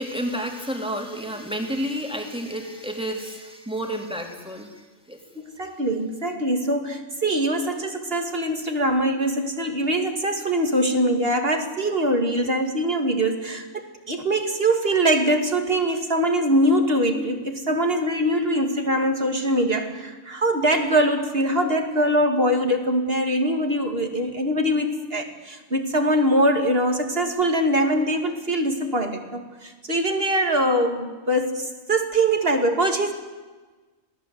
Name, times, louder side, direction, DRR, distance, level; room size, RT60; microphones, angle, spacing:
voice 1, 0.0-5.2, equal, 5° right, 2 dB, 3.5 m, -30 dB
voice 2, 5.4-33.1, right 1 dB, 45° right, 5 dB, 2.7 m, -23 dB
27.0 x 18.5 x 8.2 m, 1.3 s
omnidirectional pair, 1.3 m